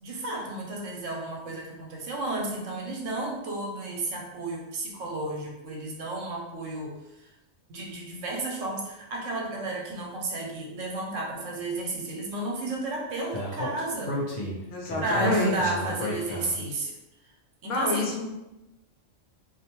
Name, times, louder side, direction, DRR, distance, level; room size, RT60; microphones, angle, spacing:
voice 1, 0.0-6.9 7.2-7.3 7.7-14.2 15.0-17.0 17.6-18.1, right 2 dB, 75° right, -1 dB, 1.0 m, -32 dB
Speech, 13.3-16.7, equal, 50° left, 0.5 m, -33 dB
voice 2, 14.7-15.7 17.6-18.2, left 2 dB, 80° left, 1 dB, 0.9 m, -27 dB
2.5 x 2.1 x 2.9 m, 0.95 s
omnidirectional pair, 1.3 m